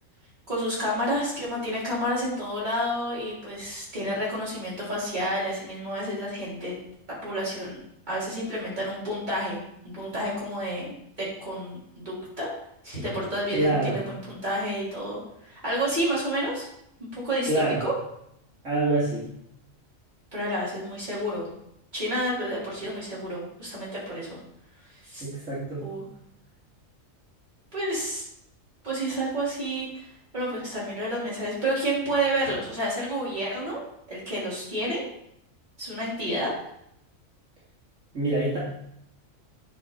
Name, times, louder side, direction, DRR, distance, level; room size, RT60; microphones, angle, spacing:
voice 1, 0.5-6.7 7.2-7.8 8.1-9.6 9.8-12.5 12.8-16.7 17.0-17.9 20.3-21.5 21.9-24.4 25.0-25.2 25.8-26.0 27.7-28.2 28.8-30.1 30.3-33.8 34.1-35.0 35.8-36.5, right 1 dB, 35° right, -8 dB, 4.2 m, -30 dB
voice 2, 13.5-14.0 17.4-17.8 18.6-19.2 25.2-25.8 38.1-38.6, right 2 dB, 60° right, -9 dB, 3.0 m, -25 dB
9.8 x 5.7 x 4.1 m, 0.76 s
omnidirectional pair, 1.4 m